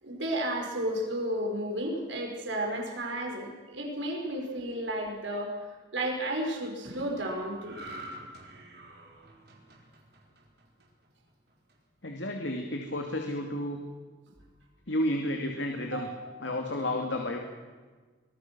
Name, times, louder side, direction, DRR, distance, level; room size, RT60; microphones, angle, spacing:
voice 1, 0.0-5.6 5.9-7.8 15.9-16.2, right 1 dB, 90° right, 2 dB, 5.2 m, -32 dB
sound 1, 7.6-11.1 11.5-11.7, right 1 dB, 60° right, 4.6 m, -46 dB
voice 2, 12.0-13.8 14.9-16.1 16.4-17.4, left 1 dB, 80° left, 2 dB, 2.5 m, -31 dB
25.5 x 20.0 x 6.1 m, 1.4 s
head